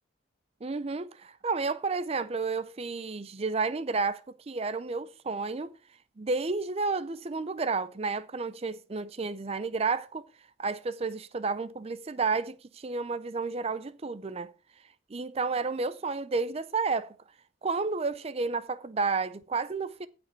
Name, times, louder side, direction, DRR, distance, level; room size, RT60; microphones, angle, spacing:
voice 1, 0.6-5.7 6.2-10.2 10.6-14.5 15.1-17.2 17.6-20.1, right 4 dB, 30° right, 0.5 m, -31 dB
15.0 x 5.1 x 4.5 m
head